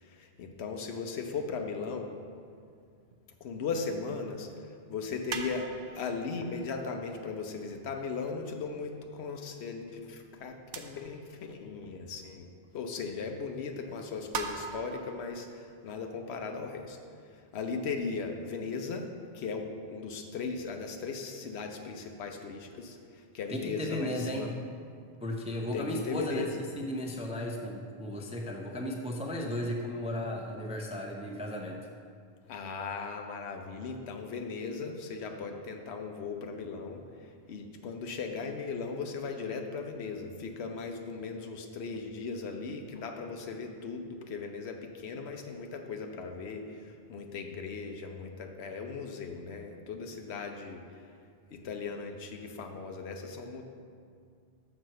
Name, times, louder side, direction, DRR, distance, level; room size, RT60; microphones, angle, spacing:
voice 1, 0.0-2.1 3.4-4.5 4.9-5.7 5.9-12.5 12.7-17.0 17.5-19.1 19.3-24.5 25.7-26.6 32.5-37.0 37.5-50.8 51.5-53.6, left 4 dB, 85° left, 4 dB, 1.0 m, -37 dB
sound 1, 3.1-3.2 4.2-4.3 5.3-7.0 7.5-7.6 8.6-8.7 9.7-9.8 10.7-11.4 11.8-11.9 12.9-13.0 14.0-15.1, right 5 dB, 65° right, 0.7 m, -40 dB
voice 2, 23.5-24.5 25.2-26.5 26.7-31.8, left 1 dB, 10° right, 1 dB, 0.3 m, -35 dB
6.2 x 4.4 x 6.4 m, 2.3 s
omnidirectional pair, 1.1 m